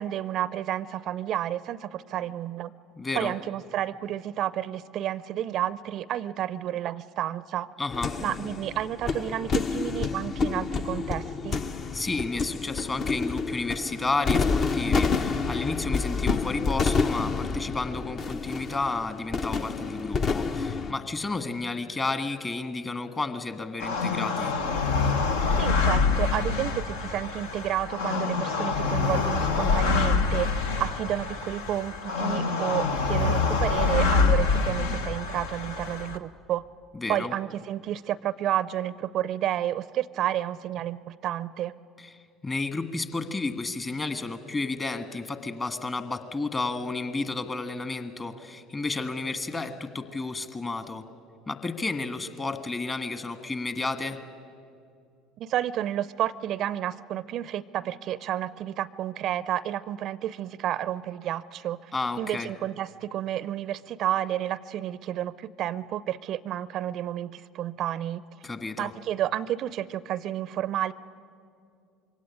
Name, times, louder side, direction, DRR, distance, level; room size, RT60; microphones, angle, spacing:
voice 1, 0.0-2.7 3.1-7.7 8.2-11.6 25.6-36.6 37.1-41.7 55.4-61.9 62.2-68.2 68.8-70.9, right 12 dB, 50° right, 19 dB, 0.5 m, -31 dB
voice 2, 3.0-3.3 7.8-8.2 11.9-24.5 36.9-37.3 42.0-42.1 42.4-51.0 51.5-54.2 61.9-62.5 68.4-68.9, left 3 dB, 25° left, 9 dB, 1.7 m, -32 dB
sound 1, 7.9-20.9, left 4 dB, 40° left, 0.8 m, -28 dB
sound 2, 23.8-36.2, left 4 dB, 75° left, 0.9 m, -26 dB
22.5 x 17.0 x 9.9 m, 2.4 s
figure-of-eight pair, 65°, 0 cm